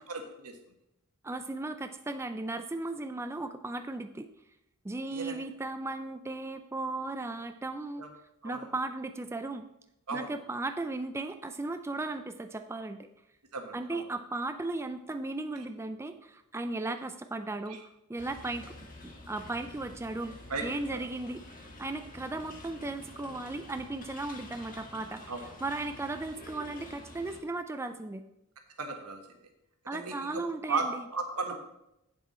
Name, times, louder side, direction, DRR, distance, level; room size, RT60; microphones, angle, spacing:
voice 1, 0.1-0.6 5.1-5.4 8.0-8.1 8.4-8.7 10.1-10.3 13.5-14.0 17.7-17.8 20.5-20.6 20.9-21.0 25.3-25.5 28.8-29.2 29.9-31.6, right 4 dB, 85° right, 4 dB, 1.4 m, -35 dB
voice 2, 1.2-4.3 4.8-8.0 8.4-9.6 10.1-13.1 13.7-17.8 18.1-18.7 19.0-20.3 20.6-25.2 25.6-28.2 29.9-31.0, right 2 dB, 10° right, 8 dB, 0.3 m, -36 dB
sound 1, 18.2-27.4, left 2 dB, 40° left, 1.3 m, -48 dB
8.3 x 7.3 x 4.1 m, 0.85 s
head